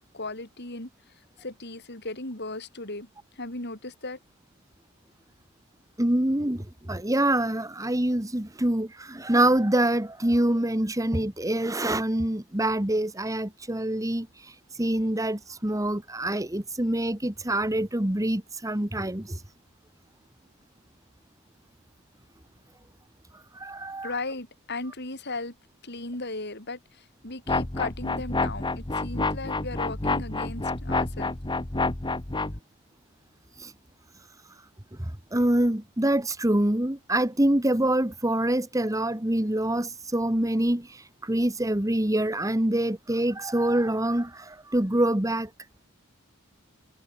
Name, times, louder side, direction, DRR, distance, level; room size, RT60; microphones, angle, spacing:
voice 1, 0.1-0.9 1.4-3.1 3.4-4.2 24.0-25.5 25.8-31.3, left 2 dB, 50° left, 6.8 m, -36 dB
voice 2, 6.0-19.4 23.5-24.1 33.6-33.7 35.3-45.5, right 1 dB, 15° right, 1.4 m, -25 dB
sound 1, 27.5-32.6, left 3 dB, 20° left, 1.2 m, -28 dB
head